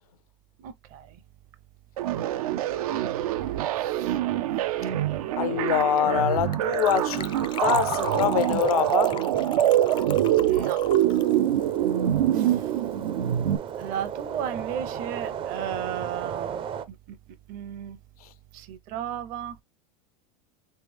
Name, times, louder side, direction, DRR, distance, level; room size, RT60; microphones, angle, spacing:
voice 1, 0.6-1.2 3.7-4.2 10.4-10.8 12.3-12.8 13.8-17.2 17.5-18.0 18.5-19.6, right 9 dB, 50° right, 0.8 m, -35 dB
sound 1, 2.0-13.6, right 12 dB, 80° right, 0.5 m, -25 dB
voice 2, 5.4-7.3 7.6-9.2, left 11 dB, 90° left, 0.6 m, -25 dB
Gurgling / Trickle dribble / Fill (with liquid), 6.5-12.8 13.0-13.1 13.3-13.5 13.8-13.9, left 11 dB, 25° left, 0.3 m, -39 dB
sound 2, 10.8-16.8, right 8 dB, 30° right, 0.5 m, -35 dB
3.5 x 3.3 x 3.3 m
supercardioid pair, 125°, 18 cm